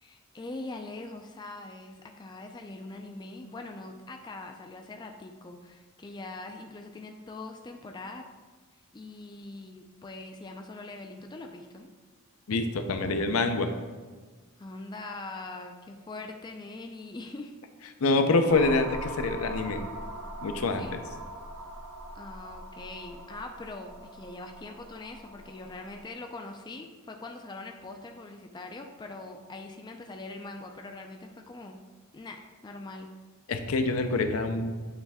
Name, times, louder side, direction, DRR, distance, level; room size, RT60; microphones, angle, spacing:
voice 1, 0.0-8.2 8.9-11.9 14.6-17.5 20.8-21.0 22.1-31.8 32.1-33.1, left 2 dB, 20° left, 4 dB, 0.3 m, -42 dB
voice 2, 12.5-13.7 18.0-19.8 20.4-21.0 33.5-34.7, left 3 dB, 70° left, 7 dB, 0.5 m, -26 dB
sound 1, 18.5-26.1, right 1 dB, 65° right, 0.9 m, -42 dB
8.9 x 3.2 x 3.4 m, 1.4 s
head